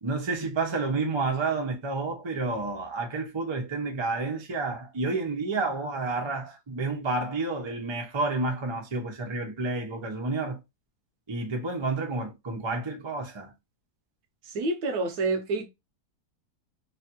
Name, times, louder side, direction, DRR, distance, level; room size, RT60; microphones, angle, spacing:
voice 1, 0.0-10.6 11.3-13.5, right 3 dB, 45° right, 0.3 m, -30 dB
voice 2, 14.4-15.7, right 3 dB, 75° right, 1.2 m, -28 dB
3.2 x 2.4 x 2.8 m
omnidirectional pair, 1.7 m